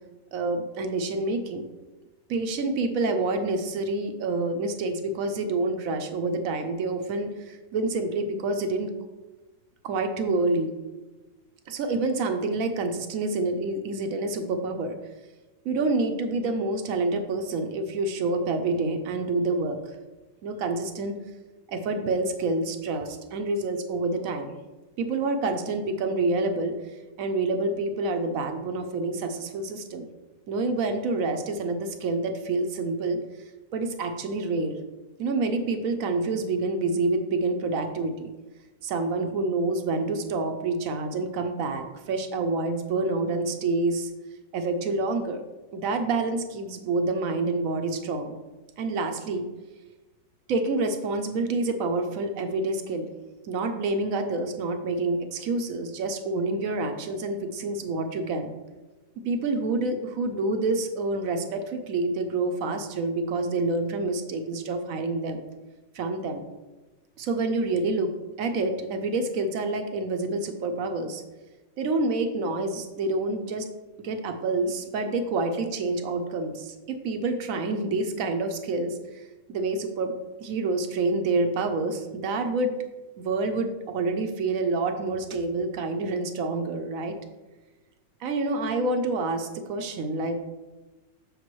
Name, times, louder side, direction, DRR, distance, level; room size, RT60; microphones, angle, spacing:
voice 1, 0.3-1.7 2.3-8.9 9.8-10.7 11.7-15.0 15.6-19.8 20.4-21.2 21.7-24.5 25.0-30.1 30.5-33.2 33.7-34.8 35.2-38.3 38.8-44.1 44.5-45.4 45.7-48.4 48.8-49.5 50.5-53.1 53.4-58.5 59.2-65.4 65.9-66.4 67.2-68.1 68.4-71.2 71.8-73.7 74.0-80.1 80.4-82.8 83.2-87.2 88.2-90.4, right 3 dB, 65° right, 6 dB, 0.9 m, -27 dB
6.8 x 6.5 x 3.1 m, 1.2 s
omnidirectional pair, 2.0 m